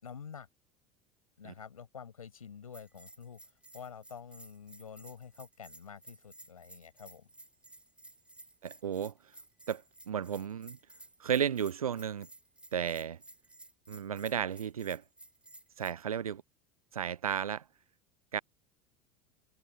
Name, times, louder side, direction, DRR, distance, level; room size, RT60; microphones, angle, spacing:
voice 1, 0.0-0.5 1.4-3.4 3.7-7.3, left 7 dB, 75° left, 6.7 m, -48 dB
Bell, 2.7-15.9, right 1 dB, 5° right, 3.3 m, -55 dB
voice 2, 8.6-9.1 9.7-10.8 11.2-12.3 12.7-13.2 13.9-15.0 15.8-16.4 16.9-17.6 18.3-18.4, right 8 dB, 80° right, 0.5 m, -33 dB
figure-of-eight pair, 70°, 18 cm